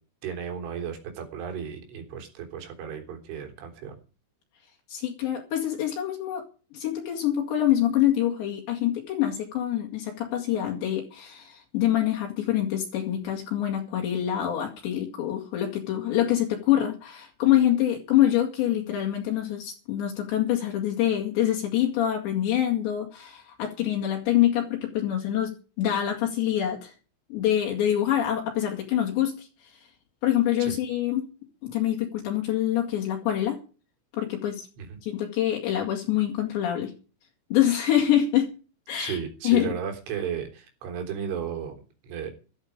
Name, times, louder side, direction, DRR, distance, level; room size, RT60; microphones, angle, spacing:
voice 1, 0.2-4.0 30.6-30.8 34.8-35.0 39.0-41.8 42.0-42.3, right 7 dB, 80° right, 5 dB, 6.0 m, -34 dB
voice 2, 4.9-6.4 6.7-26.9 27.3-29.5 30.2-31.3 31.6-33.6 34.1-34.7 35.0-36.9 37.5-38.5 38.9-39.2 39.4-39.7, left 11 dB, 70° left, 0 dB, 4.4 m, -25 dB
14.0 x 13.5 x 5.1 m, 0.36 s
omnidirectional pair, 5.5 m